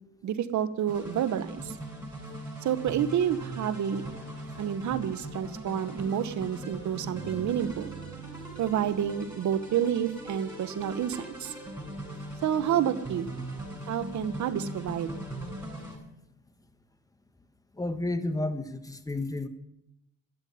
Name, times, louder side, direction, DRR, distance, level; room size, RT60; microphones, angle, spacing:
voice 1, 0.2-1.8 2.6-4.0 4.6-7.9 8.6-11.5 12.4-13.3 13.9-15.1, right 9 dB, 70° right, 12 dB, 1.2 m, -29 dB
sound 1, 0.9-16.0, right 1 dB, 10° right, 7.9 m, -40 dB
Car passing by / Truck, 3.1-16.7, right 6 dB, 50° right, 1.6 m, -49 dB
voice 2, 17.8-19.5, left 2 dB, 10° left, 10 dB, 1.4 m, -31 dB
13.0 x 9.4 x 9.5 m, 0.86 s
cardioid pair, 90°, 30 cm